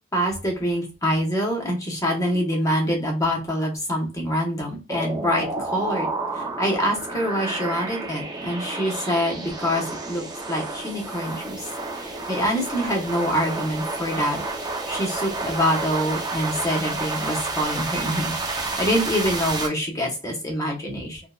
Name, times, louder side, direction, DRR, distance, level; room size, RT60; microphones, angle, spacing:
voice 1, 0.1-6.1 6.3-11.7 12.0-21.2, equal, 15° left, -1 dB, 1.1 m, -25 dB
sound 1, 4.9-19.7, right 3 dB, 20° right, 0.7 m, -30 dB
3.8 x 2.2 x 2.4 m, 0.33 s
head